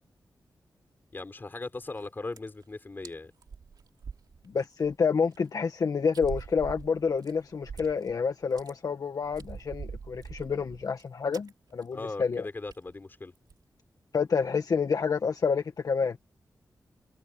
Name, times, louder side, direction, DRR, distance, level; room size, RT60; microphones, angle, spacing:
voice 1, 1.1-3.3 11.9-13.3, left 3 dB, 30° left, 3.8 m, -38 dB
sound 1, 2.0-2.1 2.3-2.6 3.0-3.1 3.4-4.9 5.3-5.4 6.1-8.2 8.4-8.7 9.2-11.0 11.3-11.5 11.8-12.0 12.3-12.4 12.7-12.9 13.4-13.6, right 5 dB, 75° right, 3.0 m, -43 dB
voice 2, 4.5-12.5 14.1-16.2, left 5 dB, 60° left, 1.5 m, -28 dB
wide cardioid pair, 110°, 7 cm